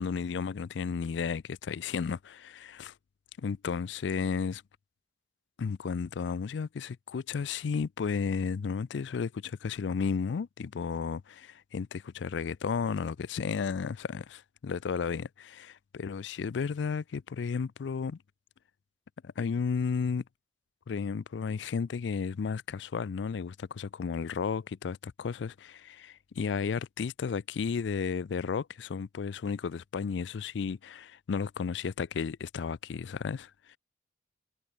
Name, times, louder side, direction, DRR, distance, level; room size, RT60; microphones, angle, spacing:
voice 1, 0.0-2.9 3.4-4.6 5.6-18.2 19.2-20.2 20.9-33.8, left 5 dB, 70° left, 0.4 m, -33 dB
head